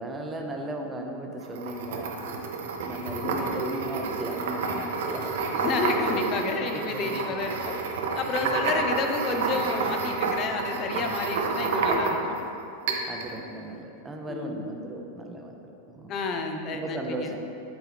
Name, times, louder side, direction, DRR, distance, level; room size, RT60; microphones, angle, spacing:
voice 1, 0.0-2.1 2.8-7.4 8.4-8.8 13.1-15.6 15.9-16.1 16.7-17.4, right 1 dB, 15° right, 2 dB, 0.7 m, -36 dB
sound 1, 1.4-12.4 12.9-13.3, right 4 dB, 55° right, 0.7 m, -29 dB
voice 2, 5.6-7.8 8.1-12.4 14.3-14.6 16.1-17.3, left 4 dB, 35° left, 5 dB, 0.6 m, -30 dB
7.8 x 4.6 x 3.5 m, 2.7 s
figure-of-eight pair, 90°, 0 cm